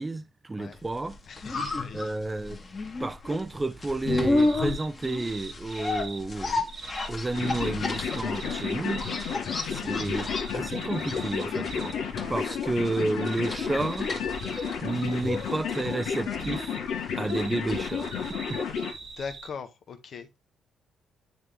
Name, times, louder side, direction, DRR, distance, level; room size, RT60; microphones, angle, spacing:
voice 1, 0.0-1.2 1.9-2.6 3.0-6.7 7.1-9.1 9.7-12.0 12.3-14.1 14.8-16.8 17.2-18.1 18.5-18.6, right 2 dB, 20° right, 0.6 m, -31 dB
sound 1, 1.0-19.0 19.3-19.4, left 3 dB, 35° left, 1.9 m, -33 dB
voice 2, 1.3-2.1 2.5-2.6 9.3-9.5 12.4-12.6 19.2-20.4, left 5 dB, 55° left, 1.4 m, -41 dB
sound 2, 4.4-6.2 6.7-12.0 12.8-16.8 17.2-19.5, right 5 dB, 50° right, 1.1 m, -43 dB
sound 3, 7.3-18.9, left 6 dB, 85° left, 2.0 m, -32 dB
9.2 x 3.7 x 3.6 m
cardioid pair, 90°, 0 cm